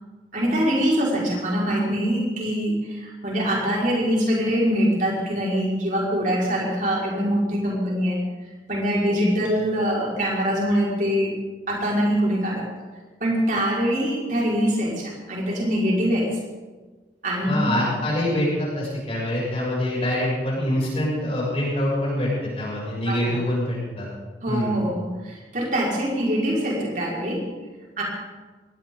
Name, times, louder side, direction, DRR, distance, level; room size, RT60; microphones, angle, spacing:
voice 1, 0.3-8.2 8.7-11.3 11.7-12.7 13.2-16.3 17.2-17.7 23.1-23.4 24.4-27.4 28.0-28.1, equal, 45° right, -3 dB, 5.2 m, -23 dB
voice 2, 17.5-24.1 24.5-24.8, left 1 dB, 35° left, -6 dB, 7.4 m, -25 dB
20.5 x 17.0 x 3.9 m, 1.3 s
head